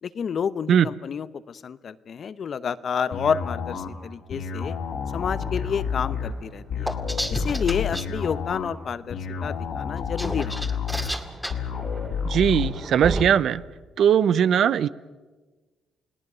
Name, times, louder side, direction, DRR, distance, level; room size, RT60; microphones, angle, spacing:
voice 1, 0.0-4.8 5.1-6.9 7.3-10.8, left 7 dB, 55° left, 15 dB, 0.8 m, -29 dB
sound 1, 3.1-12.7, left 6 dB, 70° left, 3.2 m, -30 dB
Thunder, 4.6-13.2, right 3 dB, 30° right, 3.0 m, -39 dB
sound 2, 6.9-8.0 10.0-11.5, equal, ahead, 2.1 m, -31 dB
voice 2, 12.2-13.6 14.0-14.9, right 8 dB, 65° right, 17 dB, 0.6 m, -19 dB
29.5 x 18.0 x 6.2 m, 1.3 s
supercardioid pair, 70°, 0 cm